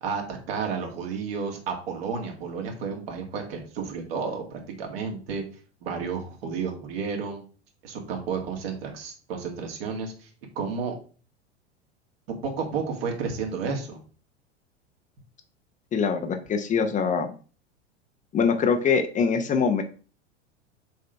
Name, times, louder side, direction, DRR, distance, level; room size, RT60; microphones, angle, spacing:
voice 1, 0.0-5.4 5.8-7.4 7.8-10.3 10.6-11.0 12.3-14.0, right 5 dB, 55° right, 2 dB, 2.2 m, -31 dB
voice 2, 15.9-17.3 18.3-19.8, left 6 dB, 20° left, 6 dB, 0.8 m, -23 dB
7.0 x 3.8 x 4.5 m, 0.38 s
figure-of-eight pair, 90°, 35 cm